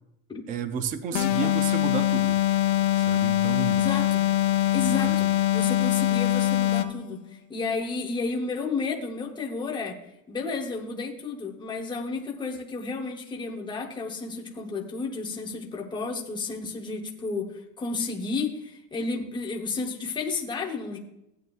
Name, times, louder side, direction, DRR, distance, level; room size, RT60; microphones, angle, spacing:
voice 1, 0.5-2.4 3.0-3.9 4.8-5.2, right 7 dB, 20° right, 10 dB, 0.3 m, -32 dB
sound 1, 1.1-7.0, left 14 dB, 40° left, 0.6 m, -23 dB
voice 2, 1.1-1.5 3.7-4.2 4.7-7.2 7.5-10.0 10.3-17.5 17.8-21.0, left 4 dB, 10° left, 1 dB, 0.9 m, -32 dB
15.0 x 9.3 x 2.4 m, 0.84 s
cardioid pair, 155°, 45 cm